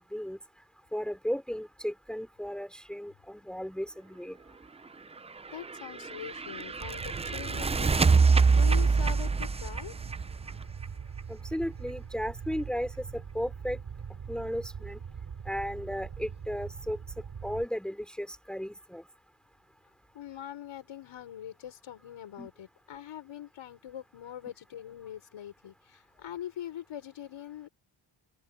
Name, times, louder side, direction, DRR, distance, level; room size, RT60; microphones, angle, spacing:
voice 1, 0.9-4.4 11.3-13.8 14.3-15.0 15.4-17.0 17.4-19.0 22.4-22.5, equal, ahead, 3.0 m, -35 dB
voice 2, 5.3-10.1 20.1-27.7, left 11 dB, 85° left, 6.0 m, -43 dB
sound 1, 5.5-11.2, right 4 dB, 15° right, 0.4 m, -25 dB
Fire, 6.8-17.6, right 6 dB, 50° right, 6.2 m, -42 dB
open air
wide cardioid pair, 140°, 47 cm